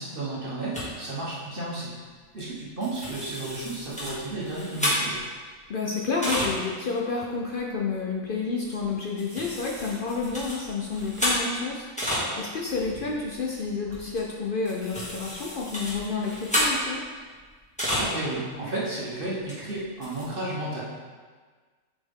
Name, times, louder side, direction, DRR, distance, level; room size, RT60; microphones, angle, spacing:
voice 1, 0.0-1.9 2.3-5.2 18.0-20.8, right 2 dB, 40° right, -6 dB, 1.3 m, -33 dB
sound 1, 0.7-0.9 2.4-2.5 2.8-5.4 6.0-6.5 7.1-7.2 7.5-7.7 8.6-8.9 9.2-12.3 12.6-18.2 18.5-18.6 19.5-19.6 19.8-20.3, equal, 5° left, 1.9 m, -31 dB
voice 2, 5.7-17.0, left 4 dB, 55° left, -2 dB, 0.6 m, -30 dB
7.6 x 4.2 x 3.6 m, 1.5 s
omnidirectional pair, 1.5 m